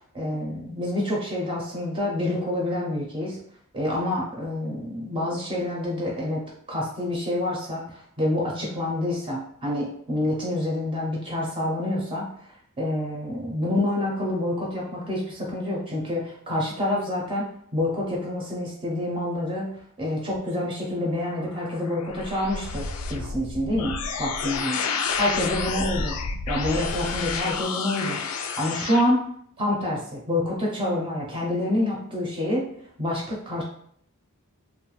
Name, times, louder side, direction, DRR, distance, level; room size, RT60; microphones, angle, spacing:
voice 1, 0.1-3.4 3.7-6.4 6.7-12.5 12.8-19.7 20.0-24.8 25.2-26.2 26.5-28.2 28.6-29.2 29.6-32.7 33.0-33.6, left 1 dB, 25° right, -3 dB, 0.5 m, -27 dB
sound 1, 21.3-29.0, left 5 dB, 85° left, 0.3 m, -30 dB
2.3 x 2.1 x 3.0 m, 0.66 s
head